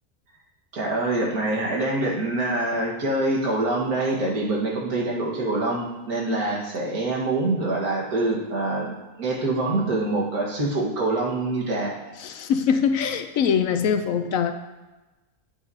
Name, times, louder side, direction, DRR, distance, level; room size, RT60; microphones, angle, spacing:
voice 1, 0.7-12.0, right 2 dB, 80° right, -3 dB, 2.0 m, -25 dB
voice 2, 12.2-14.5, left 7 dB, 70° left, 7 dB, 0.9 m, -23 dB
8.7 x 8.2 x 2.8 m, 1.1 s
omnidirectional pair, 1.6 m